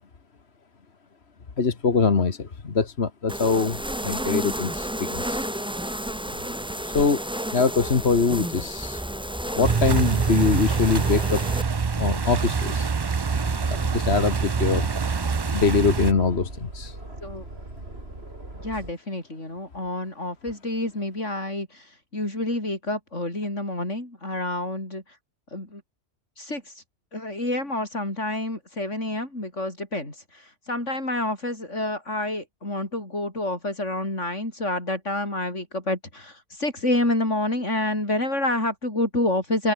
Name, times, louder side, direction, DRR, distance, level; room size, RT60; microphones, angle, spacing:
voice 1, 1.6-5.5 6.8-7.2 7.5-9.0 9.5-11.4 12.0-12.9 13.7-14.9 15.5-17.0, left 4 dB, 60° left, 2.0 m, -23 dB
sound 1, 3.3-11.6, equal, 5° right, 1.4 m, -31 dB
sound 2, 9.6-16.1, right 5 dB, 35° right, 0.4 m, -25 dB
Aircraft, 13.3-18.9, right 1 dB, 55° right, 6.1 m, -39 dB
voice 2, 18.6-21.8 22.1-25.0 25.5-25.8 26.4-26.6 27.1-30.1 30.7-39.7, left 1 dB, 85° left, 7.6 m, -28 dB
open air
omnidirectional pair, 1.2 m